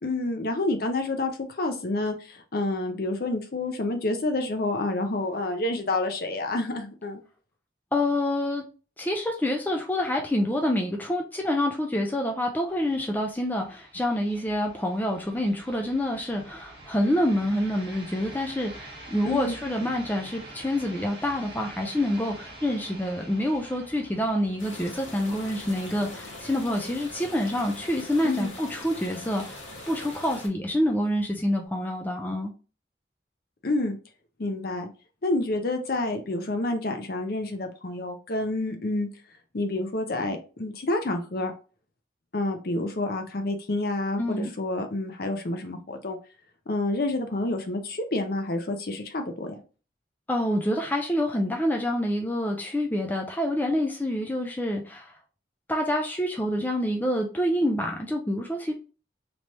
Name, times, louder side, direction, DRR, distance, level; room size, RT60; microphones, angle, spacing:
voice 1, 0.0-7.2 19.2-19.6 28.2-28.5 33.6-34.0 34.4-34.9 35.2-39.1 39.5-41.5 42.3-46.2 46.7-49.6, left 2 dB, 50° left, 0.6 m, -28 dB
voice 2, 7.9-8.6 9.0-29.6 29.9-32.5 44.2-44.5 50.3-55.1 55.7-58.7, left 1 dB, 10° left, 0.4 m, -27 dB
sound 1, 12.7-31.6, right 2 dB, 25° right, 1.1 m, -47 dB
sound 2, 24.6-30.5, left 2 dB, 85° left, 1.3 m, -42 dB
3.3 x 3.0 x 2.8 m
head